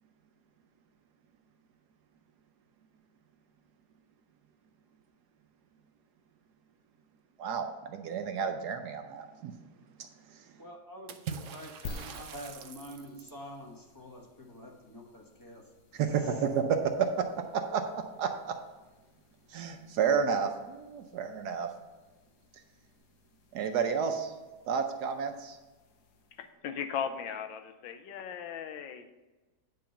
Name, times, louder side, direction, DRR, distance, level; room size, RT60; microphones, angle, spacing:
voice 1, 7.4-9.5 10.0-10.5 15.9-17.3 17.5-18.5 19.5-21.7 23.5-24.3 24.7-25.6, right 6 dB, 70° right, 6 dB, 1.1 m, -31 dB
voice 2, 10.6-16.4, equal, 15° left, -1 dB, 0.9 m, -47 dB
Water / Splash splatter, 11.1-13.5, right 7 dB, 90° right, 0.6 m, -43 dB
sound 1, 11.8-26.6, left 4 dB, 65° left, 1.2 m, -53 dB
voice 3, 26.3-29.1, left 8 dB, 90° left, 8 dB, 1.4 m, -37 dB
9.5 x 3.9 x 5.7 m, 1.2 s
omnidirectional pair, 2.0 m